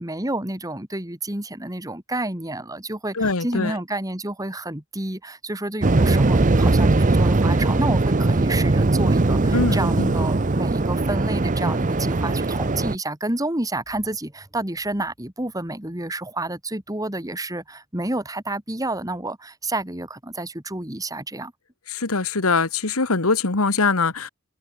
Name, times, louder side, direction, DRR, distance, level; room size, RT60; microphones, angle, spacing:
voice 1, 0.0-21.5, right 2 dB, 15° right, 2.5 m, -29 dB
voice 2, 3.1-3.7 9.5-10.1 21.9-24.3, left 3 dB, 90° left, 1.8 m, -22 dB
Waves surf, 5.8-13.0, right 2 dB, 35° right, 0.7 m, -20 dB
head